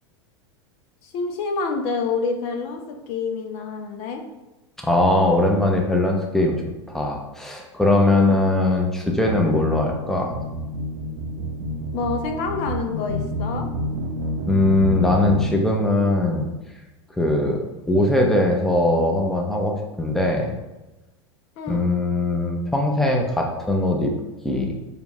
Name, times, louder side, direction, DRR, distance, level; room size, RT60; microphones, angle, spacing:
voice 1, 1.0-4.2 8.1-8.4 11.9-13.7 21.6-21.8, left 4 dB, 50° left, 4 dB, 0.6 m, -27 dB
voice 2, 4.8-6.6 6.9-10.3 14.5-16.5 17.2-17.6 17.9-20.6 21.7-24.1 24.4-24.7, left 2 dB, ahead, 1 dB, 0.6 m, -20 dB
sound 1, 9.1-15.5, equal, 65° right, 0.7 m, -29 dB
5.0 x 2.4 x 3.0 m, 1.0 s
hypercardioid pair, 100°, 15 cm